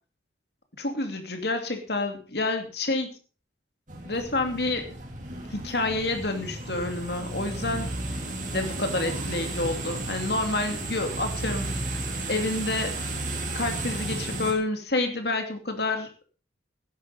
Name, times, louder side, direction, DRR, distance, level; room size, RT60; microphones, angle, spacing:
voice 1, 0.8-3.1 4.0-4.9 5.5-7.9 8.5-11.7 12.3-12.9 13.5-16.1, left 2 dB, 60° left, 5 dB, 2.7 m, -28 dB
sound 1, 3.9-14.5, right 2 dB, 45° right, 3.2 m, -33 dB
12.5 x 10.5 x 5.2 m, 0.37 s
head